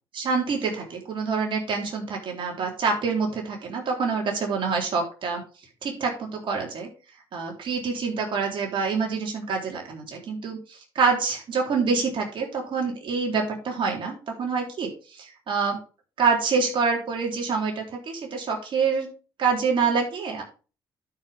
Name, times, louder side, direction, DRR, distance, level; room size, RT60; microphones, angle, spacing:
voice 1, 0.1-5.4 5.8-6.9 7.3-15.8 16.2-19.1 19.4-20.4, right 5 dB, 60° right, 0 dB, 3.9 m, -26 dB
12.0 x 5.8 x 3.7 m, 0.34 s
hypercardioid pair, 55°, 10 cm